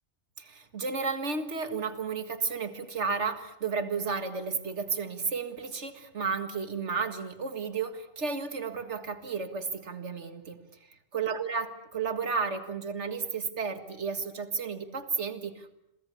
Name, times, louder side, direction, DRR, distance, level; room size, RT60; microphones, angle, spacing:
voice 1, 0.4-10.6 11.1-15.7, right 5 dB, 85° right, 9 dB, 2.2 m, -32 dB
29.5 x 23.0 x 7.1 m, 0.81 s
omnidirectional pair, 1.2 m